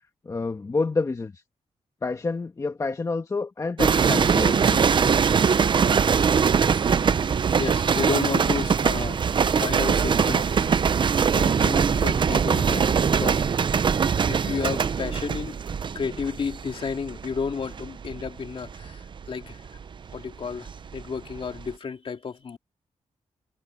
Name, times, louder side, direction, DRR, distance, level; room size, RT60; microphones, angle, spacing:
voice 1, 0.2-1.4 2.0-4.8, left 3 dB, 30° left, 1.3 m, -28 dB
sound 1, 3.8-21.0 21.3-21.7, right 6 dB, 45° right, 0.6 m, -22 dB
voice 2, 7.6-9.2 9.6-10.8 11.3-13.7 14.3-15.6 15.9-19.6 20.1-22.6, left 5 dB, 50° left, 2.4 m, -32 dB
wide cardioid pair, 145°, 12 cm